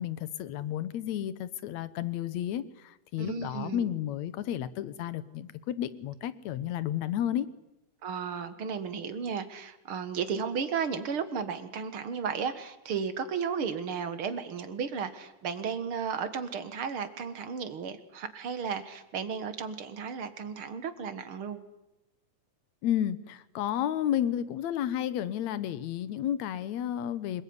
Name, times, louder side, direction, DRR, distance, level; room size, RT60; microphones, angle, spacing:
voice 1, 0.0-7.5 22.8-27.4, left 11 dB, 65° left, 16 dB, 2.3 m, -32 dB
voice 2, 3.2-3.9 8.0-21.6, right 6 dB, 50° right, 10 dB, 2.3 m, -34 dB
26.5 x 21.0 x 9.7 m, 0.95 s
omnidirectional pair, 3.6 m